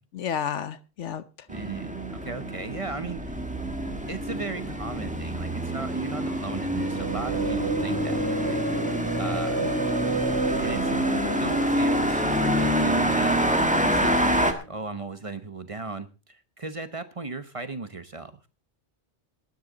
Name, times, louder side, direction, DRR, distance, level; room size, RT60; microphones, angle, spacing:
voice 1, 0.1-1.5 9.3-9.8, left 8 dB, 80° left, 1.2 m, -33 dB
sound 1, 1.5-14.5, equal, 5° right, 1.6 m, -27 dB
voice 2, 1.5-3.4 4.1-8.7 9.2-9.7 10.5-11.0 11.4-18.5, right 3 dB, 30° right, 1.0 m, -36 dB
sound 2, 6.9-14.2, right 2 dB, 65° right, 1.3 m, -31 dB
19.0 x 10.5 x 4.0 m
omnidirectional pair, 1.2 m